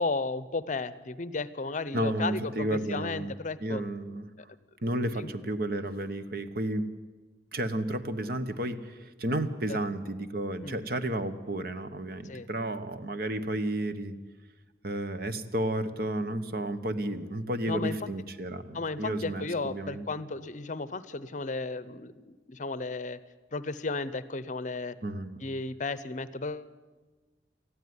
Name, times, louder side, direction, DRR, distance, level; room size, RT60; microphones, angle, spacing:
voice 1, 0.0-3.8 4.9-5.3 9.7-9.8 10.6-10.8 12.2-12.5 17.6-18.1 18.7-23.2 23.5-25.0 25.4-26.7, left 3 dB, 45° left, 16 dB, 0.7 m, -34 dB
voice 2, 1.9-3.3 3.6-4.3 4.8-6.9 7.5-14.1 14.8-20.1 25.0-25.4, right 1 dB, 55° right, 10 dB, 1.2 m, -32 dB
19.5 x 14.0 x 9.5 m, 1.3 s
head